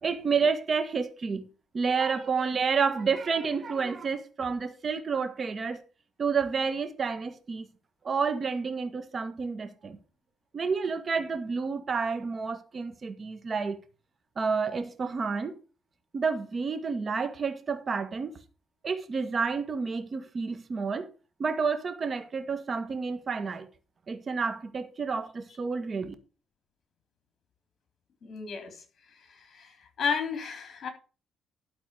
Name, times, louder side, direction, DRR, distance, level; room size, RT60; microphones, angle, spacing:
voice 1, 0.0-1.4 1.7-5.8 6.2-7.7 8.0-10.0 10.5-13.8 14.3-15.6 16.1-18.3 18.8-21.1 21.4-23.7 24.1-26.1, right 5 dB, 40° right, 1.7 m, -30 dB
voice 2, 28.2-28.8 29.2-30.9, left 6 dB, 55° left, 3.7 m, -33 dB
12.5 x 4.3 x 6.8 m
cardioid pair, 90°, 0 cm